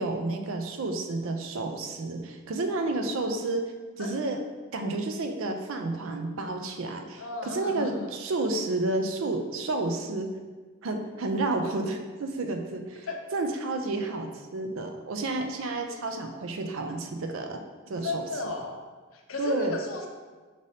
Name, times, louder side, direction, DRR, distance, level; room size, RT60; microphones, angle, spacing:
voice 1, 0.0-3.6 4.0-4.4 4.7-10.3 10.8-17.6 17.9-18.2 19.4-19.8, right 2 dB, 75° right, 5 dB, 0.5 m, -30 dB
voice 2, 7.2-8.1 13.1-13.2 18.0-18.8 19.1-20.1, left 3 dB, 85° left, 2 dB, 0.6 m, -34 dB
5.2 x 3.2 x 2.7 m, 1.4 s
head